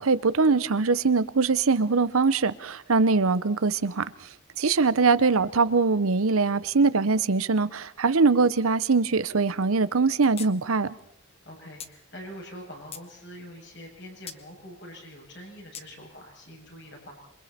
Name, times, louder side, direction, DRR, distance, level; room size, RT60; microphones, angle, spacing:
voice 1, 0.0-4.0 4.6-10.9, right 4 dB, 85° right, 0.8 m, -22 dB
sound 1, 10.4-10.5 10.8-10.9 11.8-11.9 12.5-13.1 14.3-14.4 15.7-15.9, left 8 dB, 30° left, 1.0 m, -40 dB
voice 2, 11.4-17.1, equal, 55° left, 7.4 m, -44 dB
27.0 x 24.0 x 4.3 m
head